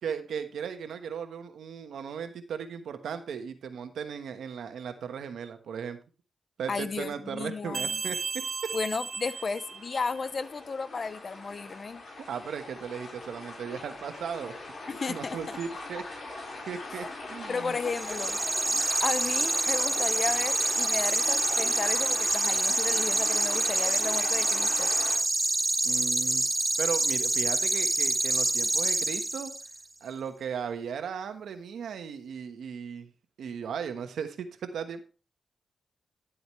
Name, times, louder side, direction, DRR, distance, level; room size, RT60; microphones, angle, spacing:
voice 1, 0.0-6.0 6.6-8.2 12.0-14.5 15.1-17.8 25.8-26.4 26.8-29.5 30.0-33.1 33.4-35.0, right 7 dB, 85° right, 8 dB, 1.2 m, -37 dB
voice 2, 6.7-8.0 8.7-12.0 14.9-15.6 17.5-18.4 19.0-24.9, left 4 dB, 50° left, 16 dB, 0.7 m, -34 dB
sound 1, 7.7-10.3, right 5 dB, 50° right, 0.8 m, -35 dB
sound 2, 8.9-25.2, left 2 dB, 65° left, 4.3 m, -40 dB
sound 3, 17.9-29.7, right 2 dB, 20° right, 0.4 m, -27 dB
11.5 x 7.9 x 3.2 m, 0.35 s
cardioid pair, 70°, 0 cm